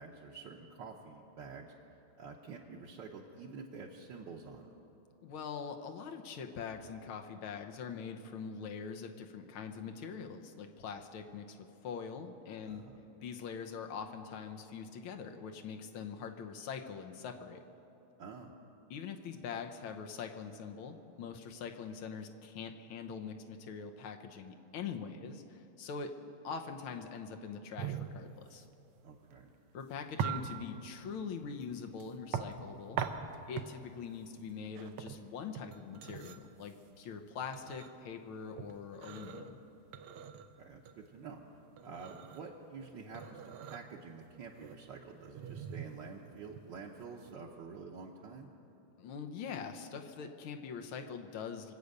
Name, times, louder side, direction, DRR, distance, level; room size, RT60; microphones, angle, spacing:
voice 1, 0.0-1.7 2.2-4.7 12.7-13.0 18.2-18.5 29.0-29.5 40.3-41.4 41.8-48.5, right 5 dB, 65° right, -2 dB, 1.5 m, -48 dB
voice 2, 5.2-11.6 11.8-12.8 13.2-17.6 18.9-28.7 29.7-33.0 33.5-39.6 49.0-51.7, left 6 dB, 90° left, 4 dB, 1.8 m, -43 dB
sound 1, 27.8-47.3, right 8 dB, 90° right, 1.6 m, -43 dB
24.5 x 8.3 x 6.6 m, 2.9 s
omnidirectional pair, 2.2 m